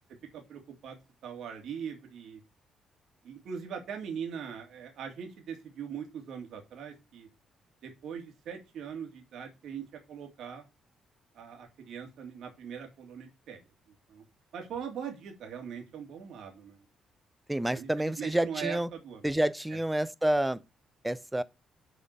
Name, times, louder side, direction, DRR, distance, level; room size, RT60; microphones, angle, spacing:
voice 1, 0.3-1.0 1.2-2.4 3.2-7.3 7.8-10.6 11.3-13.6 13.9-14.2 14.5-16.9 17.7-19.3 19.7-19.8, right 7 dB, 75° right, 2.3 m, -41 dB
voice 2, 17.5-18.9 19.2-20.6 21.0-21.4, right 1 dB, 10° right, 0.6 m, -28 dB
7.0 x 4.3 x 6.7 m
cardioid pair, 90°, 0 cm